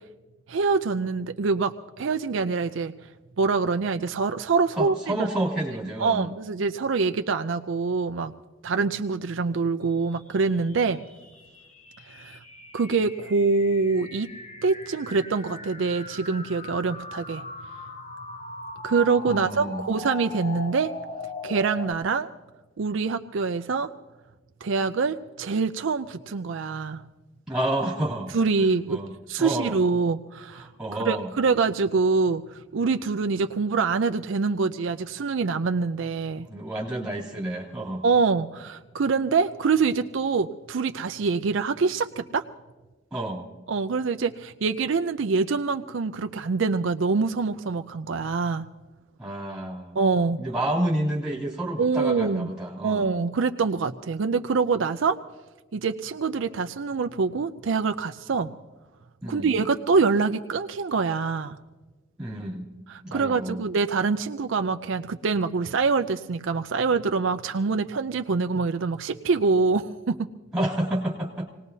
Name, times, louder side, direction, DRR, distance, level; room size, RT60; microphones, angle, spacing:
voice 1, 0.5-2.9 3.4-4.9 6.0-8.3 8.6-11.0 12.1-12.4 12.7-14.3 14.6-17.4 18.8-20.9 21.4-22.3 22.8-23.9 24.6-27.0 28.3-29.0 29.3-30.7 31.1-36.5 38.0-42.5 43.7-48.7 50.0-50.4 51.8-52.5 52.8-55.2 55.7-58.5 59.3-61.6 62.9-70.3, right 4 dB, 65° right, 8 dB, 0.5 m, -25 dB
voice 2, 4.8-6.3 19.3-19.8 27.5-28.3 28.6-29.8 30.5-31.3 36.5-38.0 43.1-43.5 49.2-50.0 50.4-53.1 59.2-59.5 62.2-63.6 70.5-71.5, right 1 dB, 5° right, -2 dB, 2.8 m, -30 dB
sound 1, 10.0-21.9, left 2 dB, 35° left, 0.9 m, -40 dB
26.5 x 19.0 x 2.7 m, 1.2 s
head